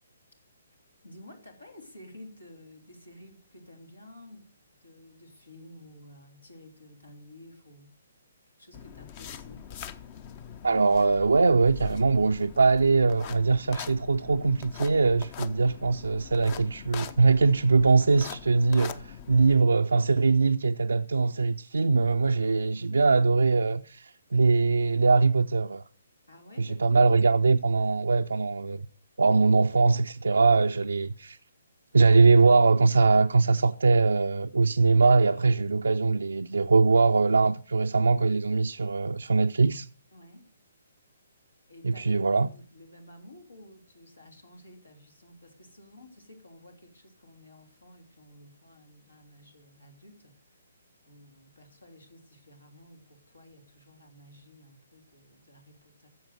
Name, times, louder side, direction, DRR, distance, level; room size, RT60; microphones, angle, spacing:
voice 1, 1.0-4.5 4.8-8.0 8.6-9.7 26.3-27.0 40.1-40.5 41.7-50.6 51.0-56.1, left 1 dB, 80° left, 3.3 m, -52 dB
sound 1, 8.7-19.6, left 8 dB, 30° left, 0.8 m, -43 dB
voice 2, 10.6-25.8 26.6-28.9 29.2-31.4 31.9-39.9 41.8-42.5, right 4 dB, 70° right, 0.5 m, -22 dB
14.0 x 7.7 x 6.5 m
figure-of-eight pair, 130°, 0 cm